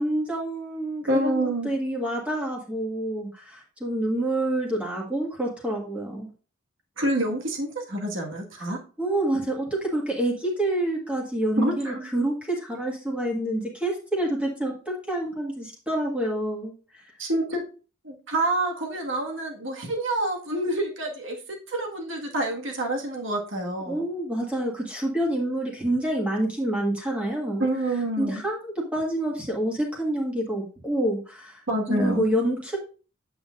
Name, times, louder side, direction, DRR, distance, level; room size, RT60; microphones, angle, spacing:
voice 1, 0.0-6.3 9.0-17.1 23.9-27.6 28.2-31.6 31.9-32.8, right 1 dB, 5° right, -2 dB, 1.7 m, -27 dB
voice 2, 1.1-1.7 7.0-8.8 11.6-12.1 17.2-17.6 18.0-24.0 27.6-28.4 31.7-32.3, right 1 dB, 60° right, 1 dB, 1.8 m, -27 dB
8.4 x 7.7 x 2.5 m, 0.37 s
head